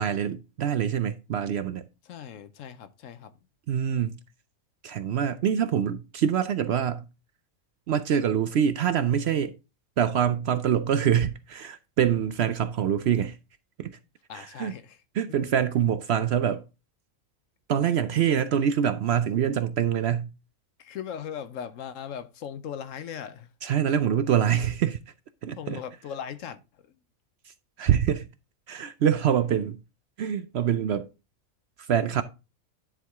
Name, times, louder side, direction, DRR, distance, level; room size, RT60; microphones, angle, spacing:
voice 1, 0.0-1.8 3.7-4.2 4.8-7.1 7.9-9.5 10.0-13.4 13.8-14.0 14.3-14.7 15.1-16.6 17.7-20.3 23.6-25.0 25.4-25.8 27.8-28.2 28.7-29.8 30.2-31.1 31.9-32.2, right 9 dB, 65° right, 0.7 m, -25 dB
voice 2, 2.0-3.4 14.3-15.0 15.3-15.4 20.8-23.5 25.6-27.0, left 8 dB, 70° left, 1.1 m, -39 dB
10.0 x 4.6 x 3.5 m
omnidirectional pair, 1.4 m